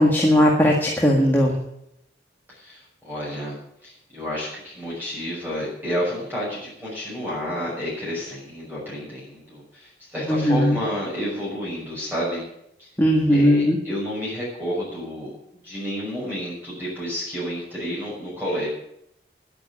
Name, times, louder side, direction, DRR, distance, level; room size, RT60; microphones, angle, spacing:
voice 1, 0.0-1.5 10.3-10.8 13.0-13.8, equal, 10° left, -2 dB, 1.8 m, -18 dB
voice 2, 2.5-3.6 3.8-12.4 12.8-12.9 13.3-15.3 15.6-18.7, equal, 10° right, -7 dB, 5.9 m, -30 dB
11.5 x 9.6 x 8.6 m, 0.78 s
head